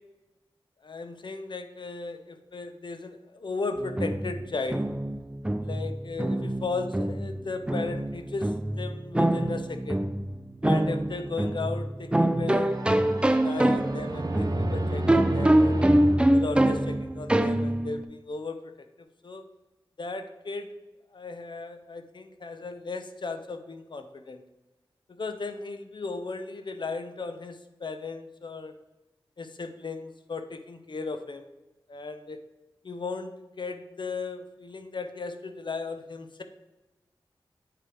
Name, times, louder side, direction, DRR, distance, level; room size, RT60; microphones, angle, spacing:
voice 1, 0.8-4.8 5.6-10.0 10.6-12.8 13.3-15.8 16.3-18.7 19.2-19.5 20.0-20.8 21.1-24.4 25.1-28.7 29.4-31.4 31.9-32.4 32.8-36.4, left 3 dB, 55° left, 8 dB, 0.6 m, -36 dB
sound 1, 3.8-18.0, right 1 dB, 10° right, 0.3 m, -25 dB
sound 2, 12.7-17.5, right 1 dB, 45° right, 0.8 m, -31 dB
8.7 x 3.4 x 4.7 m, 1.1 s
wide cardioid pair, 70°, 9 cm